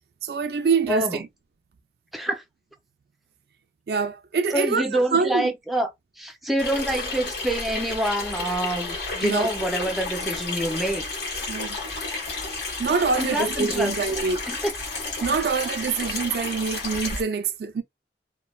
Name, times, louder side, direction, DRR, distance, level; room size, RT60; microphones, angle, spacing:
voice 1, 0.2-1.3 3.9-5.5 9.2-9.5 11.5-11.8 12.8-14.5 15.2-17.8, right 5 dB, 60° right, 0.4 m, -25 dB
voice 2, 0.9-1.2 2.1-2.4 4.5-5.9 6.2-11.1 13.2-14.2 14.5-14.7, right 1 dB, ahead, 0.5 m, -26 dB
Water tap faucet / Sink (filling or washing), 6.6-17.2, left 3 dB, 70° left, 1.4 m, -31 dB
3.1 x 2.1 x 2.3 m
head